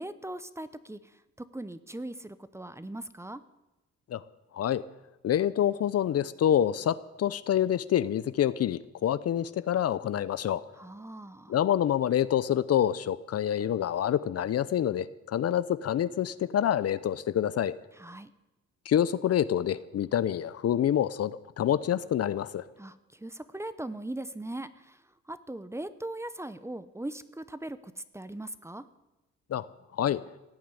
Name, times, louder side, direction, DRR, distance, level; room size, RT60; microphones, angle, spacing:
voice 1, 0.0-3.4 10.8-11.6 17.9-18.3 22.8-28.9, right 1 dB, 10° right, 14 dB, 0.8 m, -40 dB
voice 2, 5.2-10.6 11.5-17.7 18.9-22.6 29.5-29.7 30.0-30.2, left 10 dB, 55° left, 16 dB, 0.7 m, -27 dB
16.5 x 7.4 x 9.7 m, 1.0 s
cardioid pair, 90°, 30 cm